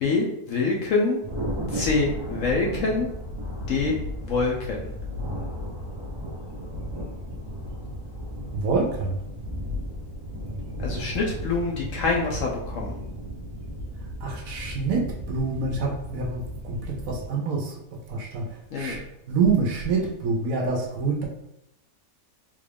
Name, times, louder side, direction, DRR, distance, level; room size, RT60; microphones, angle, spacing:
voice 1, 0.0-1.2 1.7-3.1 3.7-3.9 4.2-4.8 10.8-13.0 18.7-19.0, left 3 dB, 70° left, -1 dB, 0.8 m, -25 dB
Thunder, 1.2-17.2, equal, 30° right, 0.4 m, -34 dB
voice 2, 8.5-9.2 14.2-17.7 18.1-18.4 18.7-19.0 19.3-21.3, right 4 dB, 70° right, 1 dB, 0.9 m, -26 dB
3.6 x 2.3 x 3.3 m, 0.83 s
omnidirectional pair, 1.7 m